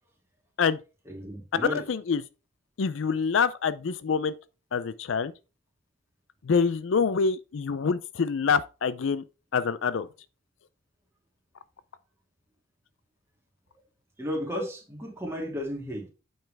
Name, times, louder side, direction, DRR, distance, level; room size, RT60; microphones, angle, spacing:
voice 1, 1.1-1.8 14.2-16.1, equal, 15° right, 2.4 m, -33 dB
voice 2, 1.6-2.2 2.8-4.3 4.7-5.3 6.4-9.2 9.5-10.1, left 5 dB, 65° left, 0.4 m, -26 dB
8.9 x 5.6 x 3.4 m
head